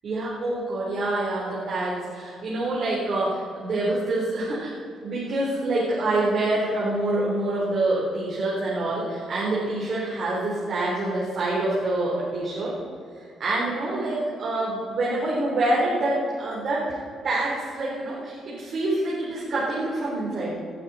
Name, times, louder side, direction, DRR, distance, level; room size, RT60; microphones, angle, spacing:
voice 1, 0.0-4.7 5.0-12.7 13.4-17.0 17.2-20.5, right 2 dB, 55° right, -7 dB, 4.1 m, -26 dB
19.0 x 11.0 x 4.4 m, 2.3 s
cardioid pair, 90°, 0 cm